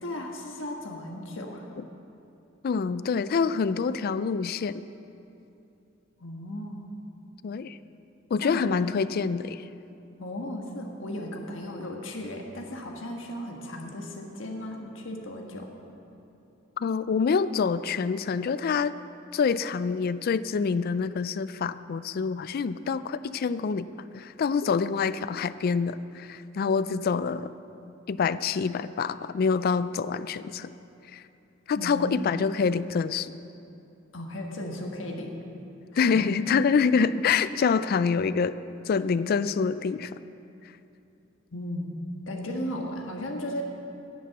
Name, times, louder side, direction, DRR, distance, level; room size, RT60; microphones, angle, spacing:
voice 1, 0.0-1.7 6.2-6.8 8.4-8.7 10.2-15.7 31.7-32.1 34.1-35.3 35.9-36.4 41.5-41.9 42.3-43.6, left 1 dB, 70° left, 1 dB, 1.4 m, -36 dB
voice 2, 2.6-4.8 7.4-7.8 8.3-9.6 16.8-18.9 19.3-23.9 24.1-27.5 28.1-30.7 31.1-31.2 31.7-33.3 36.0-38.6 38.9-40.1, left 5 dB, 50° left, 15 dB, 0.3 m, -26 dB
10.0 x 7.6 x 7.9 m, 2.7 s
head